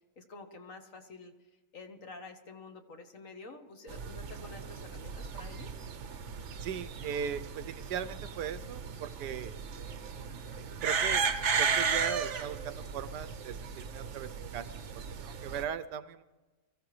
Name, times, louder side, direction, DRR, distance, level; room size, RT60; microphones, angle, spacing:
voice 1, 0.2-1.3 1.7-5.7, left 3 dB, 50° left, 5 dB, 1.5 m, -49 dB
sound 1, 3.9-15.6, right 6 dB, 50° right, 1.0 m, -35 dB
voice 2, 6.6-9.5 10.6-11.2 11.6-16.2, right 8 dB, 80° right, 12 dB, 1.2 m, -39 dB
24.0 x 15.0 x 3.2 m, 1.2 s
omnidirectional pair, 1.8 m